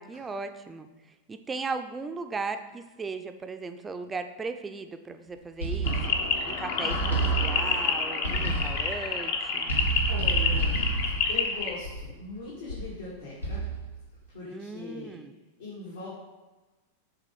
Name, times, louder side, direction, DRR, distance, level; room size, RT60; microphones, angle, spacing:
voice 1, 0.0-7.0 7.3-9.8 14.5-15.3, right 4 dB, 15° right, 8 dB, 0.5 m, -37 dB
sound 1, 5.6-6.5 6.9-7.8 8.2-9.0 9.7-12.2 12.7-13.0 13.4-14.0, right 3 dB, 90° left, 1.3 m, -29 dB
sound 2, 5.8-11.8, left 5 dB, 50° left, 0.9 m, -29 dB
voice 2, 6.5-7.3 10.1-13.7 14.3-15.2 15.6-16.1, left 2 dB, 70° left, -8 dB, 1.9 m, -41 dB
7.3 x 3.6 x 5.1 m, 1.2 s
figure-of-eight pair, 90°, 0 cm